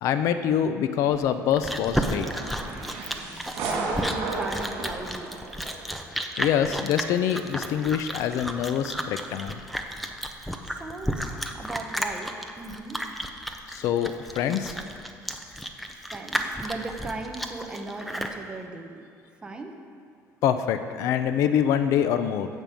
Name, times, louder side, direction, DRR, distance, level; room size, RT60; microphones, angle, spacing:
voice 1, 0.0-2.3 6.4-9.6 13.7-14.8 20.4-22.5, left 9 dB, 60° left, 10 dB, 0.6 m, -25 dB
Chewing mastication, 1.1-18.4, equal, ahead, 0.6 m, -32 dB
sound 1, 1.9-6.0, right 3 dB, 80° right, 3.2 m, -34 dB
voice 2, 3.6-5.4 10.7-13.0 15.9-19.0 19.4-19.8, right 2 dB, 15° right, 3 dB, 1.0 m, -37 dB
15.5 x 5.4 x 7.6 m, 2.3 s
cardioid pair, 180°, 6 cm